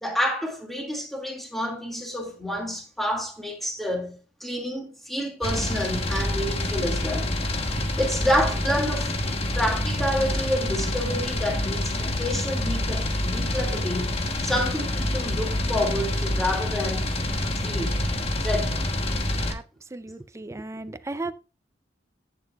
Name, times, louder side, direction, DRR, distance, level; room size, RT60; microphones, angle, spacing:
voice 1, 0.0-7.4 8.0-9.1 9.5-17.1 17.5-18.0 18.4-18.8, equal, ahead, 2.1 m, -29 dB
sound 1, 5.4-19.5, left 1 dB, 35° left, 1.1 m, -27 dB
voice 2, 19.9-21.3, right 2 dB, 15° right, 0.4 m, -35 dB
11.0 x 8.5 x 2.3 m
head